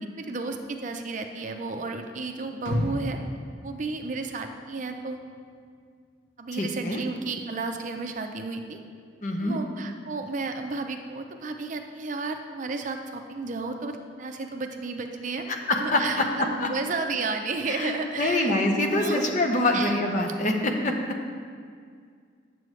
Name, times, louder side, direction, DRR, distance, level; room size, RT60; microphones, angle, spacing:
voice 1, 0.0-3.2 3.6-5.2 6.4-8.8 9.4-15.5 15.8-18.5 18.9-19.2 19.7-19.9, right 3 dB, 40° right, 5 dB, 0.5 m, -33 dB
sound 1, 2.7-4.8 5.2-5.3, left 1 dB, 80° left, 1.0 m, -32 dB
voice 2, 6.5-7.0 9.2-9.6 15.5-16.7 17.7-20.9, left 1 dB, 45° left, 2 dB, 0.8 m, -25 dB
9.0 x 7.6 x 3.2 m, 2.1 s
head